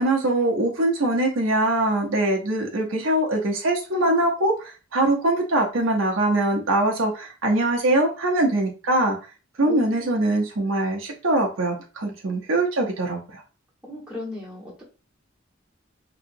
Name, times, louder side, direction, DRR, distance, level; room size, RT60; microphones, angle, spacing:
voice 1, 0.0-9.2 9.6-13.4, right 1 dB, 85° right, 0.9 m, -22 dB
voice 2, 9.6-10.3 13.9-14.8, left 2 dB, 5° right, 1.4 m, -36 dB
3.2 x 2.9 x 2.6 m
head